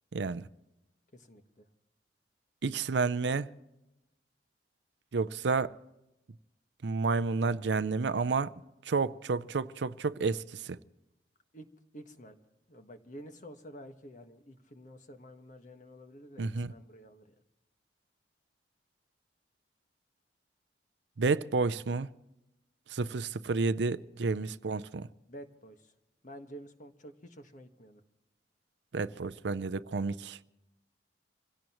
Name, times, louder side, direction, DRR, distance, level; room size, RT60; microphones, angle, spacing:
voice 1, 0.1-0.4 2.6-3.5 5.1-5.7 6.8-8.5 8.8-10.8 16.4-16.7 21.2-22.1 22.9-25.1 28.9-30.5, right 4 dB, 75° right, 0.5 m, -30 dB
voice 2, 1.1-1.7 11.5-11.7 11.9-12.4 12.7-17.4 24.3-24.5 25.3-25.9 26.2-28.0, equal, 45° left, 1.5 m, -50 dB
27.0 x 17.0 x 3.1 m
head